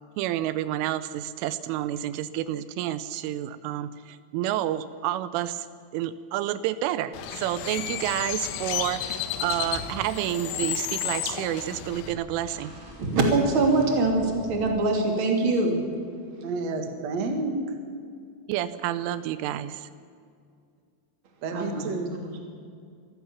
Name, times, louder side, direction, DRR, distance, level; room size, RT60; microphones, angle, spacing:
voice 1, 0.2-5.7 5.9-12.7 18.5-19.9, right 12 dB, 85° right, 14 dB, 3.2 m, -29 dB
Bird, 7.1-12.1, left 11 dB, 80° left, 3.6 m, -32 dB
sound 1, 9.4-14.7, equal, 10° right, 3.5 m, -48 dB
voice 2, 13.0-15.8 21.5-21.9, right 2 dB, 30° right, 2 dB, 2.8 m, -23 dB
voice 3, 16.4-17.7 21.4-22.1, right 3 dB, 50° right, 5 dB, 2.2 m, -30 dB
25.0 x 14.5 x 7.2 m, 2.3 s
omnidirectional pair, 5.6 m